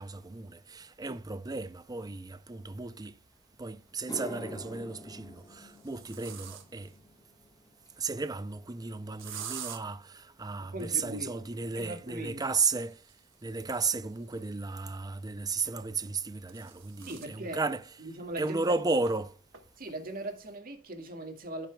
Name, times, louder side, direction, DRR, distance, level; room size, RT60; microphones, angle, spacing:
voice 1, 0.0-3.2 3.6-6.9 8.0-13.0 13.4-17.8 18.4-19.3, right 4 dB, 20° right, 0.5 m, -34 dB
sound 1, 2.8-2.9 4.4-4.8 5.4-7.0 9.2-9.8 12.4-15.0 16.0-17.4 17.8-17.9 18.3-18.4 19.1-19.2 19.5-19.9, right 9 dB, 70° right, 1.5 m, -47 dB
sound 2, 3.4-3.5 3.9-12.4 12.7-13.1 16.7-16.8 18.5-18.6 18.8-19.0 19.2-19.8, left 1 dB, 20° left, 1.4 m, -49 dB
voice 2, 10.7-11.4 11.7-12.4 17.1-17.6 18.0-18.7 19.8-21.7, right 1 dB, 45° right, 2.0 m, -39 dB
15.0 x 6.0 x 2.3 m
head